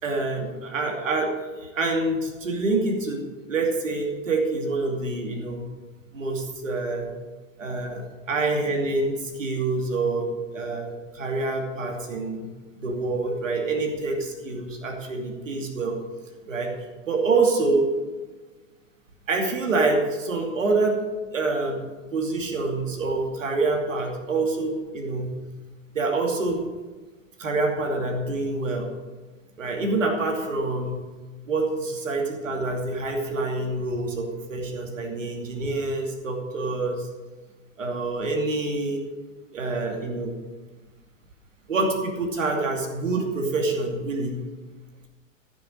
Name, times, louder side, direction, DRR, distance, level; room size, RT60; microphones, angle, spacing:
voice 1, 0.0-5.7 6.1-7.1 7.6-12.5 12.8-16.0 16.5-16.7 17.1-17.9 19.3-21.0 21.3-25.3 25.9-26.6 27.4-28.9 29.6-31.0 31.5-37.1 37.8-39.0 39.5-40.3 41.7-44.4, right 3 dB, 75° right, 1 dB, 2.7 m, -26 dB
14.5 x 7.9 x 6.4 m, 1.3 s
figure-of-eight pair, 95°, 38 cm